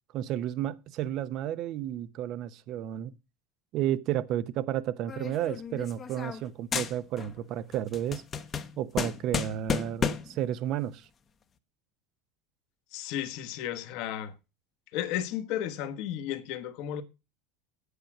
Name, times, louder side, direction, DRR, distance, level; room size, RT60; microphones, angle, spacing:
voice 1, 0.1-3.1 3.7-8.2 8.8-11.1, right 11 dB, 50° right, 0.8 m, -32 dB
sound 1, 5.1-6.5 6.7-7.4 7.7-10.4, left 6 dB, 30° left, 0.9 m, -33 dB
voice 2, 12.9-14.3 14.9-17.0, left 11 dB, 60° left, 1.3 m, -33 dB
8.6 x 8.2 x 5.9 m
supercardioid pair, 120°, 0 cm